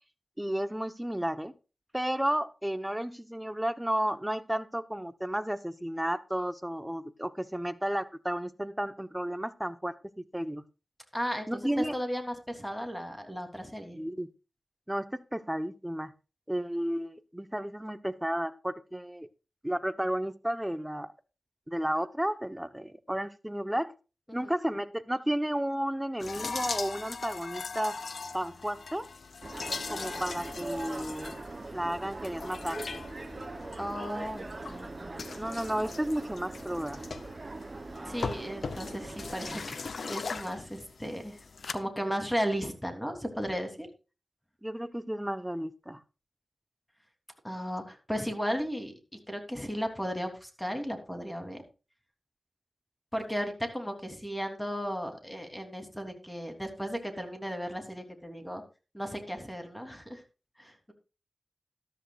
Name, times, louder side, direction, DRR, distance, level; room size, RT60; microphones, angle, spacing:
voice 1, 0.4-1.5 1.9-10.6 11.5-11.9 13.9-14.3 14.9-16.1 16.5-19.3 19.6-21.1 21.7-23.9 24.3-28.0 28.3-29.1 29.9-31.3 31.7-33.0 35.4-37.0 44.6-46.0, right 1 dB, 10° right, 12 dB, 0.9 m, -32 dB
voice 2, 11.1-14.0 24.4-24.5 33.8-35.1 38.1-39.8 40.0-41.4 41.7-43.9 47.4-51.6 53.1-58.6 58.9-60.2 60.6-60.9, equal, 5° left, 5 dB, 3.2 m, -35 dB
sound 1, 26.2-41.7, left 4 dB, 75° left, 0.8 m, -40 dB
sound 2, 29.4-39.6, right 2 dB, 45° right, 0.8 m, -42 dB
13.5 x 12.5 x 2.4 m, 0.32 s
cardioid pair, 50°, 0 cm